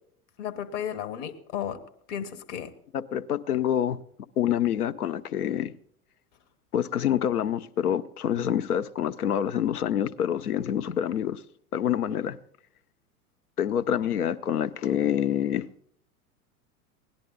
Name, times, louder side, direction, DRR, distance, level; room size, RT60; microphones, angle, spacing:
voice 1, 0.4-1.8 2.1-2.7 12.1-12.2, left 9 dB, 55° left, 1.3 m, -34 dB
voice 2, 2.9-4.0 4.4-5.7 6.7-11.4 11.7-12.4 13.6-15.7, left 10 dB, 90° left, 0.6 m, -26 dB
17.5 x 10.5 x 3.8 m
figure-of-eight pair, 85°, 44 cm